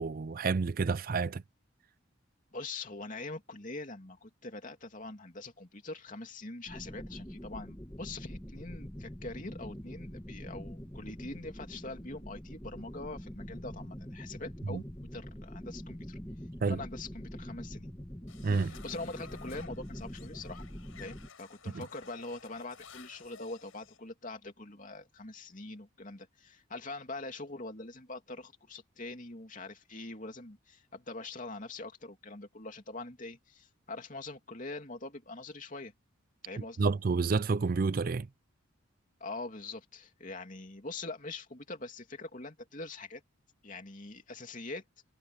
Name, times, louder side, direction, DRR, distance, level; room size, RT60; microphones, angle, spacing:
voice 1, 0.0-1.4 14.7-14.8 16.6-16.8 18.4-18.8 21.7-21.8 36.8-38.3, right 4 dB, 45° right, 0.4 m, -29 dB
voice 2, 2.5-14.8 15.1-16.2 16.7-17.9 18.5-20.7 21.0-35.9 36.4-36.9 39.2-43.2 43.6-44.8, left 2 dB, 40° left, 3.0 m, -43 dB
sound 1, 6.7-21.3, equal, 15° left, 1.6 m, -44 dB
sound 2, 18.3-24.0, left 6 dB, 75° left, 5.3 m, -54 dB
head